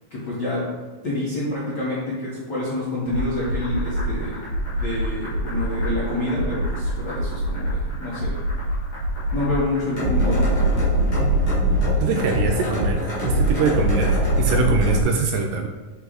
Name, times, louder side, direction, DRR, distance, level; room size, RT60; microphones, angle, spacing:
voice 1, 0.1-0.6 1.0-4.4 4.8-8.3 9.3-10.5, left 2 dB, 85° left, -8 dB, 0.9 m, -27 dB
sound 1, 3.1-15.0, right 1 dB, 45° left, 2.5 m, -23 dB
voice 2, 12.0-15.7, right 4 dB, 80° right, 3 dB, 1.9 m, -23 dB
5.2 x 4.6 x 3.9 m, 1.3 s
omnidirectional pair, 4.0 m